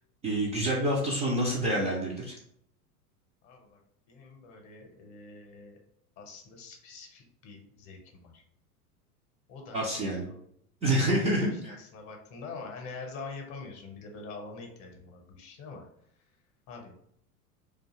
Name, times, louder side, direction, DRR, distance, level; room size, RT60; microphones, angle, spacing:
voice 1, 0.2-2.3 9.7-10.3 10.8-11.7, right 1 dB, 15° right, -6 dB, 0.3 m, -27 dB
voice 2, 3.4-3.8 4.1-5.8 6.2-8.4 9.5-9.8 10.1-10.4 11.6-15.9 16.7-16.9, left 4 dB, 40° left, 2 dB, 0.8 m, -45 dB
2.4 x 2.3 x 2.9 m, 0.68 s
hypercardioid pair, 95°, 45 cm